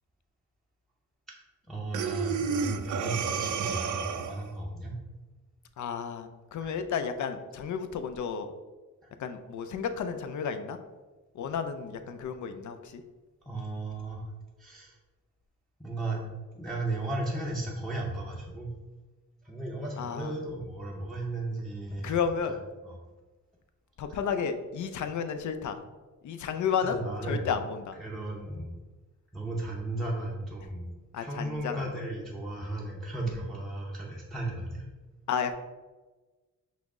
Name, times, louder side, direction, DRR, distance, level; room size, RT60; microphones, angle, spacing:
voice 1, 1.7-5.0 6.6-6.7 13.5-14.2 14.6-14.9 15.8-16.3 16.5-18.7 19.4-22.2 22.8-23.0 26.9-27.5 28.0-28.7 29.3-34.8, right 2 dB, ahead, -4 dB, 0.6 m, -35 dB
Breathing, 1.9-4.5, right 6 dB, 65° right, 0.5 m, -31 dB
voice 2, 5.8-8.5 9.2-10.8 11.3-13.0 20.0-20.3 22.0-22.5 24.0-25.8 26.2-27.9 31.1-31.9 35.3-35.5, left 6 dB, 60° left, 8 dB, 0.5 m, -32 dB
5.7 x 2.0 x 3.6 m, 1.2 s
cardioid pair, 85°, 34 cm